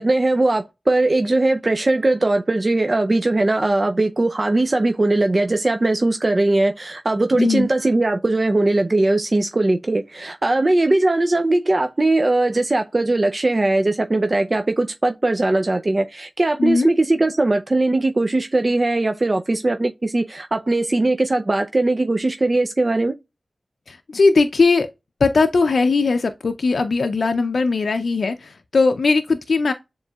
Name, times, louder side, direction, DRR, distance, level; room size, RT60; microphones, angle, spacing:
voice 1, 0.0-23.1, right 2 dB, 40° right, 0.4 m, -19 dB
voice 2, 7.3-7.7 16.6-16.9 23.9-24.9 25.2-29.7, left 4 dB, 75° left, 0.4 m, -19 dB
7.1 x 3.0 x 2.3 m
wide cardioid pair, 80°, 0 cm